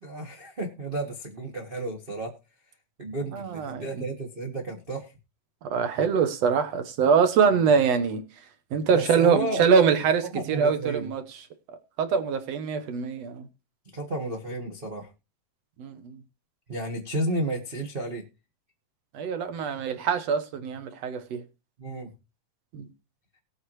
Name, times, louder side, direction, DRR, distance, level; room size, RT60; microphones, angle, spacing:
voice 1, 0.0-2.3 3.0-5.1 7.5-7.6 8.9-9.7 10.3-11.1 13.9-15.1 16.7-18.2 21.8-22.1, right 1 dB, 85° right, 0.4 m, -32 dB
voice 2, 3.3-3.9 5.6-8.2 8.7-11.2 12.0-13.5 15.8-16.2 19.1-21.4 22.7-22.9, right 6 dB, 60° right, 2.0 m, -24 dB
19.0 x 8.1 x 3.1 m
omnidirectional pair, 3.8 m